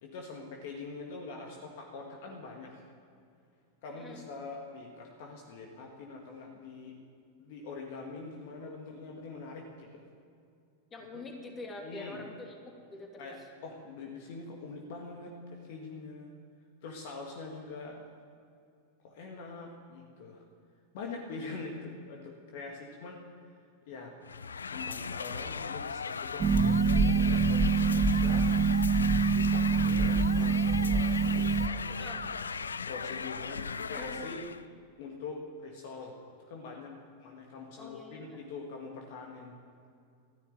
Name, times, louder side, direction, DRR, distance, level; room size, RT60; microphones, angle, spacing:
voice 1, 0.0-2.8 3.8-7.0 7.4-10.0 11.1-11.3 11.8-12.2 13.2-16.3 16.8-18.1 19.0-20.4 20.9-23.2 23.9-24.1 24.7-28.5 29.4-32.1 32.8-34.4 35.0-39.5, left 3 dB, 50° left, 1 dB, 1.9 m, -44 dB
voice 2, 10.9-13.4 32.0-32.2 33.9-34.3 37.8-38.4, left 2 dB, 20° left, 2 dB, 2.7 m, -45 dB
sound 1, 24.2-34.6, left 5 dB, 70° left, 0.4 m, -38 dB
Harp, 26.4-31.7, right 4 dB, 25° right, 0.9 m, -25 dB
13.5 x 11.0 x 9.4 m, 2.4 s
figure-of-eight pair, 90°, 0 cm